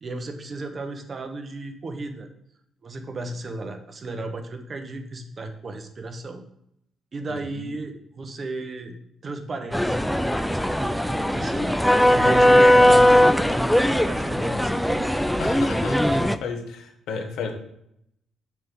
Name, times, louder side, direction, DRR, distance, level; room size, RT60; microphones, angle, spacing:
voice 1, 0.0-2.3 2.8-6.4 7.1-9.0 9.2-10.3 10.6-15.1 17.1-17.3, right 2 dB, 40° right, 5 dB, 1.0 m, -34 dB
voice 2, 7.3-7.8 12.7-13.2 15.4-17.5, left 5 dB, 80° left, 4 dB, 1.2 m, -34 dB
sound 1, 9.7-16.4, left 1 dB, ahead, 0.4 m, -19 dB
7.4 x 3.5 x 6.1 m, 0.75 s
cardioid pair, 90°, 0 cm